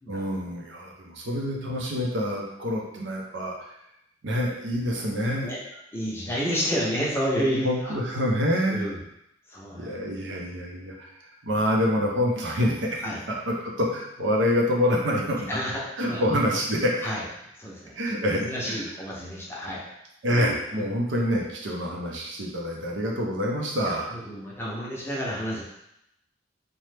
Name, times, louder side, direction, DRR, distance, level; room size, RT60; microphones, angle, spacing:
voice 1, 0.1-3.7 4.2-5.5 7.6-8.9 9.7-15.5 16.0-16.9 18.0-18.9 20.2-24.1, equal, 75° right, -1 dB, 0.6 m, -27 dB
voice 2, 5.9-7.9 8.7-9.0 9.5-9.9 13.0-13.2 15.5-16.2 17.0-17.2 17.6-18.0 18.3-19.8 20.7-20.9 23.8-25.6, equal, 15° left, -5 dB, 0.6 m, -30 dB
2.9 x 2.1 x 3.2 m, 0.81 s
head